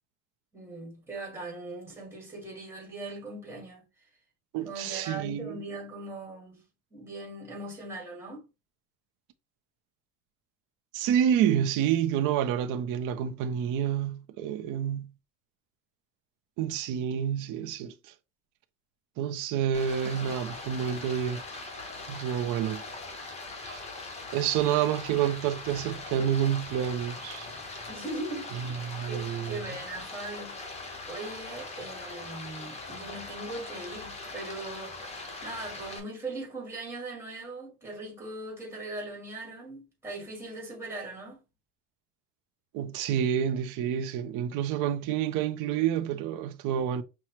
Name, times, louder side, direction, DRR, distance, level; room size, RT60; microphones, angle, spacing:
voice 1, 0.5-3.9 4.7-6.7 6.9-8.4 27.9-30.6 31.0-41.4, right 2 dB, 5° right, 1.7 m, -40 dB
voice 2, 4.5-5.6 10.9-15.1 16.6-17.9 19.2-21.4 22.1-22.8 23.6-23.8 24.3-27.5 28.5-29.6 42.7-47.0, right 9 dB, 55° right, 0.7 m, -28 dB
Stream, 19.7-36.0, left 3 dB, 20° left, 1.0 m, -41 dB
5.8 x 2.3 x 3.1 m
cardioid pair, 145°, 37 cm